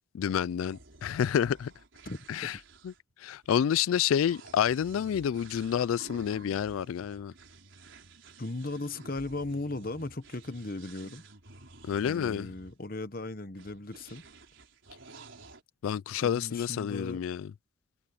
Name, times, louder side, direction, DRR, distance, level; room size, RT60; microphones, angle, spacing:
voice 1, 0.1-1.7 2.3-2.6 2.8-2.9 3.2-7.3 11.8-12.5 15.8-17.5, left 8 dB, 85° left, 0.3 m, -29 dB
sound 1, 0.6-12.8 13.6-15.6, right 3 dB, 70° right, 4.0 m, -52 dB
voice 2, 2.0-2.5 8.4-11.2 12.0-14.2 16.2-17.2, left 2 dB, 45° left, 1.1 m, -37 dB
head